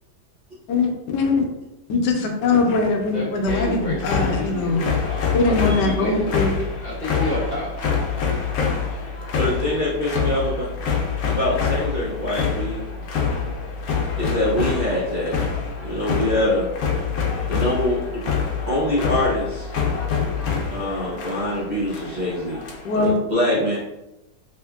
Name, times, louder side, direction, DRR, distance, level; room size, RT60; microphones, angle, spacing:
voice 1, 0.7-1.5 1.9-4.8 5.3-6.5 22.8-23.1, left 3 dB, 85° left, 3 dB, 1.2 m, -21 dB
voice 2, 3.1-6.4 6.8-7.7, left 1 dB, 40° left, -6 dB, 1.0 m, -29 dB
sound 1, 3.5-23.1, left 6 dB, 70° left, 1.1 m, -26 dB
voice 3, 9.3-10.9 11.2-12.8 14.1-16.7 17.5-18.2 18.7-19.7 20.7-23.8, left 1 dB, 55° right, -6 dB, 0.5 m, -24 dB
3.5 x 3.1 x 2.3 m, 0.94 s
omnidirectional pair, 1.8 m